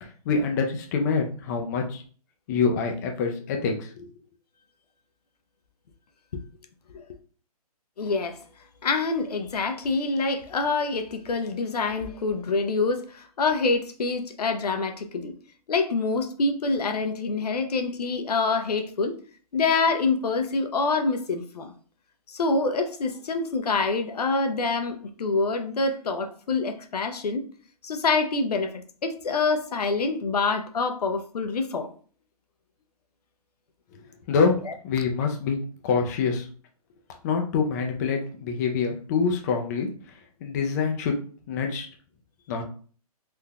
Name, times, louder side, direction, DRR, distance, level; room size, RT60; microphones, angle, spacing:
voice 1, 0.0-2.0 2.5-4.1 34.3-34.5 34.8-35.6 35.8-36.5 37.2-39.9 40.4-41.1 41.5-41.9 42.5-42.6, left 5 dB, 25° left, 0.4 m, -25 dB
voice 2, 8.0-8.4 8.8-15.3 15.7-19.2 19.5-21.7 22.3-27.4 27.8-31.9 34.7-34.8, left 3 dB, 90° left, 0.6 m, -26 dB
3.7 x 2.5 x 2.2 m
hypercardioid pair, 150°, 20 cm